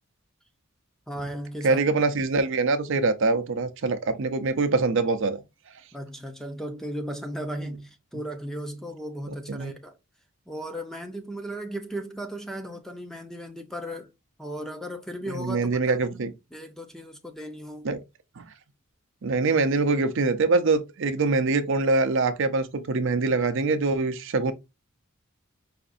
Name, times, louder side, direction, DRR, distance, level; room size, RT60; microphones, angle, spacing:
voice 1, 1.1-1.8 5.9-9.9 10.5-14.1 14.4-17.9, equal, ahead, 0.6 m, -36 dB
voice 2, 1.6-5.4 9.5-9.7 15.3-16.3 17.8-18.0 18.4-18.5 19.2-24.5, right 3 dB, 60° right, 0.5 m, -24 dB
4.9 x 2.5 x 2.5 m
head